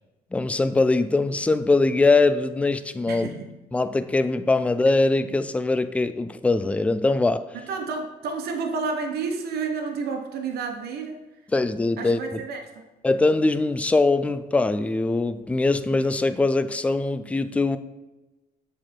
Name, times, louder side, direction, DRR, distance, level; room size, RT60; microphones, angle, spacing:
voice 1, 0.3-3.3 3.7-7.4 11.5-12.4 13.0-17.8, left 3 dB, 10° left, 0.3 m, -22 dB
voice 2, 3.1-3.5 7.5-11.2 12.0-12.6, right 4 dB, 70° right, 1.2 m, -30 dB
7.4 x 4.4 x 4.4 m
cardioid pair, 110°, 17 cm